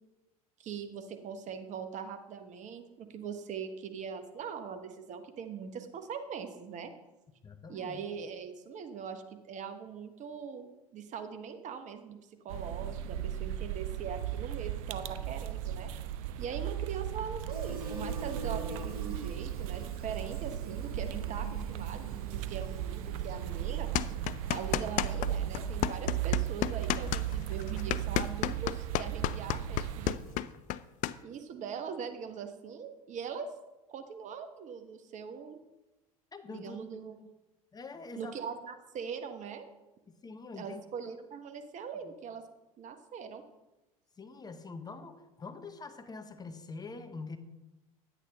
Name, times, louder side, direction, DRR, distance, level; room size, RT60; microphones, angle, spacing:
voice 1, 0.6-6.9 7.7-12.2 12.4-15.9 16.4-23.9 24.5-30.2 31.2-33.5 33.9-35.6 36.5-37.2 38.2-39.7 40.6-42.4 42.8-43.4, right 6 dB, 40° right, 7 dB, 1.0 m, -41 dB
voice 2, 7.4-8.1 36.3-36.8 37.7-38.4 40.1-40.8 42.0-42.1 44.2-47.4, left 4 dB, 20° left, 8 dB, 0.9 m, -45 dB
sound 1, 12.5-30.1, right 11 dB, 65° right, 0.6 m, -36 dB
Fill (with liquid), 17.5-30.6, right 3 dB, 85° right, 1.2 m, -47 dB
sound 2, 23.9-25.3 25.5-31.1, left 14 dB, 45° left, 0.4 m, -31 dB
10.0 x 8.4 x 3.5 m, 1.0 s
hypercardioid pair, 75°, 18 cm